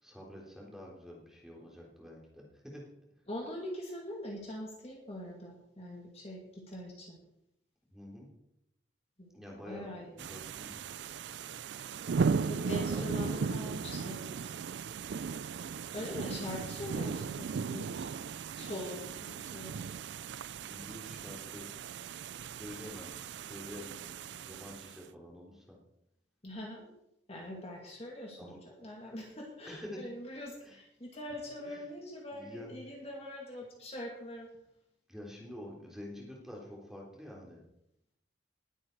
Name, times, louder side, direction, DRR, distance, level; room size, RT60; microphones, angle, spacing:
voice 1, 0.0-2.8 7.9-8.3 9.3-9.9 10.2-10.9 12.4-13.7 20.5-21.7 22.4-23.1 23.4-25.8 28.4-28.6 29.7-30.0 30.6-30.8 31.6-31.9 32.3-32.7 35.1-37.6, left 1 dB, ahead, -3 dB, 3.5 m, -47 dB
voice 2, 3.3-7.2 9.2-10.2 12.3-14.5 15.9-18.1 18.6-19.9 26.4-26.9 27.3-34.5, left 1 dB, 30° left, -1 dB, 2.4 m, -43 dB
sound 1, 10.2-25.0, right 5 dB, 65° right, 0.4 m, -37 dB
20.0 x 8.8 x 4.7 m, 0.81 s
head